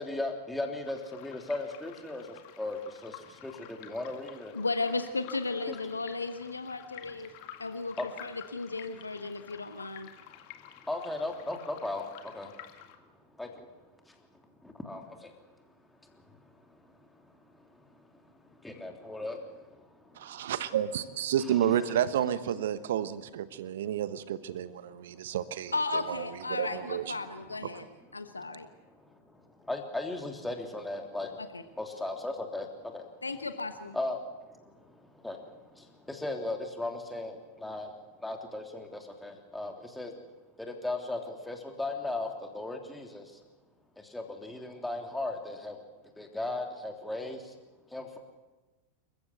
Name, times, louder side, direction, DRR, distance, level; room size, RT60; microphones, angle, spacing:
voice 1, 0.0-4.6 5.7-5.8 8.0-8.1 9.5-9.7 10.1-10.2 10.5-12.7 13.4-13.8 14.0-14.2 14.6-15.3 16.0-20.5 25.2-25.4 28.2-28.3 28.9-31.4 31.8-33.1 33.9-38.0 38.2-40.1 40.6-43.4 44.0-45.8 46.2-47.5 47.9-48.2, left 2 dB, 5° left, 3 dB, 3.2 m, -38 dB
sound 1, 0.8-13.0, left 11 dB, 45° left, 2.0 m, -51 dB
voice 2, 4.5-7.3 7.6-8.0 8.2-10.1 25.7-27.8 28.1-28.7 31.4-31.6 33.2-34.0, left 3 dB, 80° left, 9 dB, 1.1 m, -34 dB
voice 3, 20.2-25.7 26.1-26.2 26.5-27.2 27.7-27.8, right 10 dB, 60° right, 15 dB, 1.1 m, -31 dB
27.5 x 15.0 x 8.0 m, 1.2 s
figure-of-eight pair, 90°, 0 cm